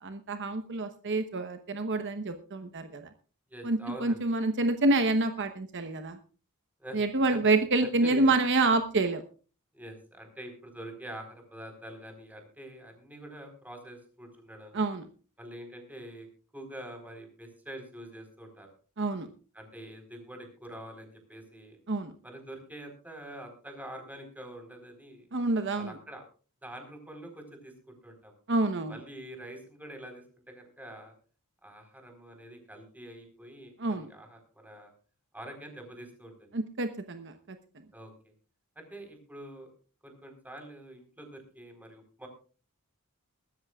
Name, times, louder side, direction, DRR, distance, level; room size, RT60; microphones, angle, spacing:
voice 1, 0.0-3.1 3.6-6.2 6.9-9.2 14.7-15.1 19.0-19.3 21.9-22.1 25.3-26.0 28.5-29.0 33.8-34.1 36.5-37.3, right 2 dB, 55° right, 8 dB, 1.0 m, -27 dB
voice 2, 3.5-4.2 6.8-7.0 7.3-7.4 7.8-8.3 9.7-14.7 15.4-16.3 16.5-18.7 19.5-21.8 22.2-25.3 25.8-26.2 26.6-28.3 28.9-31.1 31.6-34.9 35.3-36.5 37.9-38.1 38.8-39.7 40.0-42.3, right 1 dB, 10° right, 4 dB, 4.2 m, -45 dB
21.5 x 13.5 x 2.4 m, 0.37 s
head